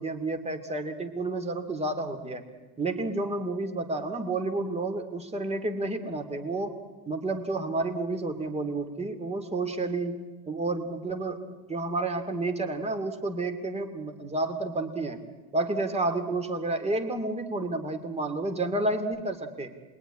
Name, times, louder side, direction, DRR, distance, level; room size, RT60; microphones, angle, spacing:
voice 1, 0.0-2.4 2.8-6.7 7.1-10.2 10.5-15.2 15.5-19.7, right 2 dB, 15° right, 7 dB, 2.4 m, -30 dB
27.5 x 21.0 x 9.9 m, 1.2 s
cardioid pair, 140°, 48 cm